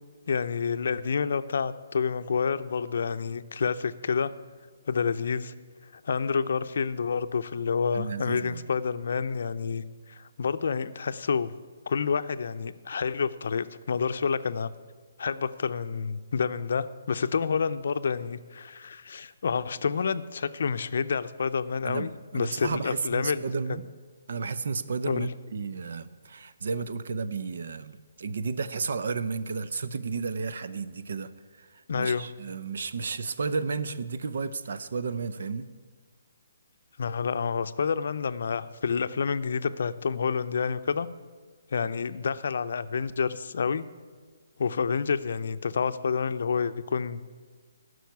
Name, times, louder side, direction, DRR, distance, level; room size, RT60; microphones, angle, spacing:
voice 1, 0.3-4.3 4.9-5.5 5.9-9.8 10.1-11.5 11.9-14.7 15.2-23.8 25.1-25.3 31.9-32.3 37.0-41.1 41.7-43.8 44.6-47.3, left 5 dB, 65° left, 12 dB, 0.5 m, -29 dB
voice 2, 7.9-8.7 21.8-23.8 24.3-35.7, right 4 dB, 70° right, 13 dB, 0.7 m, -33 dB
11.5 x 6.3 x 9.4 m, 1.5 s
hypercardioid pair, 150°, 0 cm